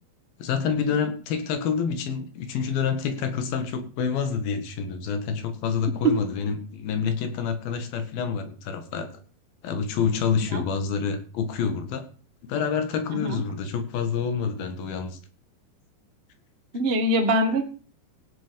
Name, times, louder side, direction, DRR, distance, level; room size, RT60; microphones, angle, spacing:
voice 1, 0.4-9.1 9.6-12.0 12.5-15.2, left 6 dB, 75° left, 8 dB, 3.4 m, -27 dB
voice 2, 16.7-17.6, right 1 dB, 45° right, 5 dB, 0.7 m, -23 dB
17.0 x 7.5 x 5.3 m, 0.38 s
omnidirectional pair, 4.2 m